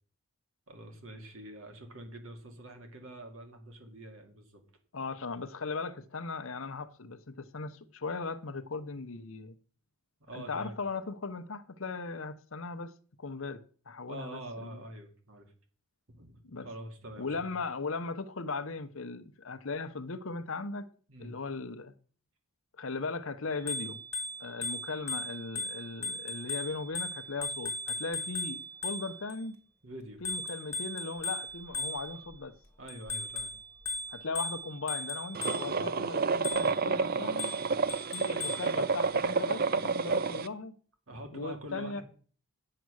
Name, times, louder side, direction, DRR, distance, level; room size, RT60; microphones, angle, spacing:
voice 1, 0.7-4.6 10.2-10.8 14.1-15.5 16.1-17.4 21.1-21.3 29.8-30.2 32.1-32.2 32.8-33.5 41.1-42.0, right 1 dB, 65° right, 2.3 m, -45 dB
voice 2, 4.9-9.5 10.3-12.9 13.2-13.6 13.9-14.8 16.4-16.7 17.2-20.9 21.2-21.9 22.8-24.0 24.4-29.6 30.2-32.5 34.1-37.5 38.1-40.7 41.3-42.0, left 4 dB, 60° left, 0.8 m, -38 dB
Bicycle bell, 23.5-29.4 30.2-32.3 32.9-35.9 36.4-36.9 37.4-38.7, left 2 dB, 10° left, 2.0 m, -38 dB
sound 1, 35.3-40.5, right 4 dB, 40° right, 0.5 m, -30 dB
9.5 x 7.7 x 6.3 m
head